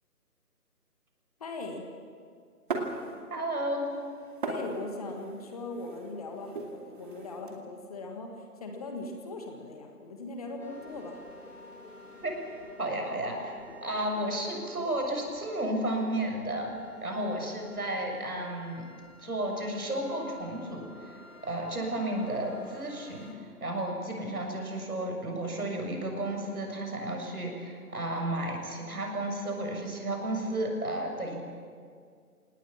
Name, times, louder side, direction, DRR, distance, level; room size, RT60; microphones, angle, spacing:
voice 1, 1.4-1.9 4.4-11.2, left 2 dB, 25° left, 3 dB, 1.7 m, -39 dB
sound 1, 2.7-3.6 3.8-7.5, right 3 dB, 35° right, 2.5 m, -38 dB
voice 2, 3.3-3.9 12.2-12.4 12.8-16.7 17.0-18.8 19.2-21.2 21.4-31.4, right 1 dB, 70° right, 2 dB, 7.0 m, -33 dB
sound 2, 10.6-23.3, left 2 dB, 55° left, 4.0 m, -52 dB
27.5 x 18.5 x 7.3 m, 2.1 s
figure-of-eight pair, 155°, 46 cm